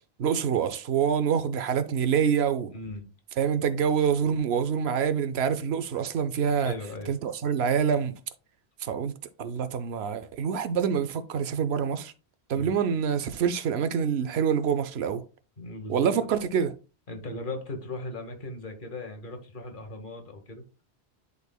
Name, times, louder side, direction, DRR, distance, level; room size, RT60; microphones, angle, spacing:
voice 1, 0.2-2.7 3.4-6.7 7.1-8.1 8.8-9.1 9.4-12.1 12.5-15.2 15.9-16.7, right 7 dB, 70° right, 0.8 m, -26 dB
voice 2, 2.7-3.1 6.6-7.1 12.5-12.8 15.6-16.3 17.1-20.6, left 2 dB, 50° left, 1.3 m, -38 dB
11.0 x 4.0 x 2.2 m
omnidirectional pair, 1.1 m